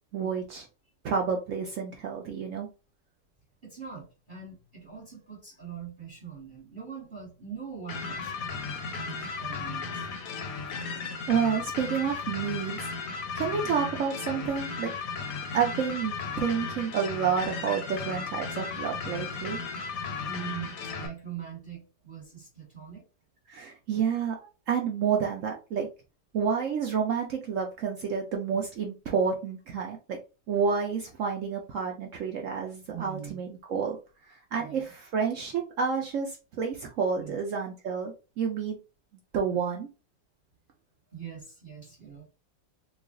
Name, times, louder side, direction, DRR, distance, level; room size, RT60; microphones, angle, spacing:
voice 1, 0.1-0.7 1.0-2.7 9.2-9.4 11.3-13.0 13.3-14.9 15.5-19.6 23.5-24.4 24.7-25.9 26.3-30.2 30.5-34.0 34.3-38.8 39.3-39.9, right 6 dB, 70° right, 2 dB, 0.7 m, -29 dB
voice 2, 3.6-8.5 8.9-10.1 20.2-23.0 32.9-33.4 34.6-34.9 37.2-37.4 41.1-42.3, right 8 dB, 30° right, -4 dB, 1.4 m, -42 dB
sound 1, 7.9-21.1, left 4 dB, 65° left, 0.9 m, -35 dB
3.1 x 2.3 x 3.6 m, 0.31 s
omnidirectional pair, 1.9 m